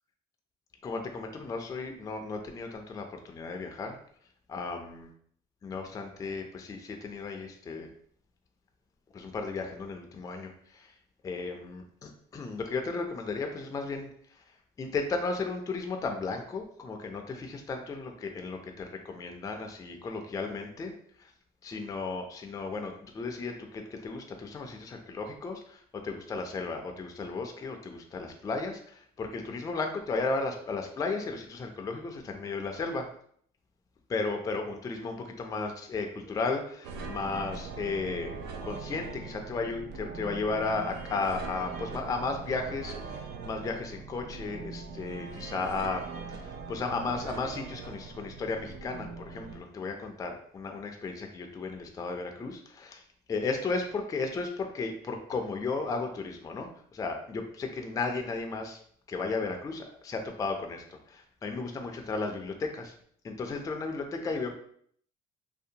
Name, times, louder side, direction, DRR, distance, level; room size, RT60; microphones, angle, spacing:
voice 1, 0.8-4.0 4.5-5.1 5.6-7.9 9.1-10.9 11.2-14.1 14.8-20.9 21.2-21.3 21.6-33.1 34.1-38.4 38.6-53.0 53.3-58.8 59.1-62.9 63.2-64.5, left 3 dB, 20° left, 4 dB, 0.3 m, -34 dB
sound 1, 36.8-49.6, right 4 dB, 80° right, 0.4 m, -41 dB
2.6 x 2.0 x 2.7 m, 0.62 s
cardioid pair, 110°, 17 cm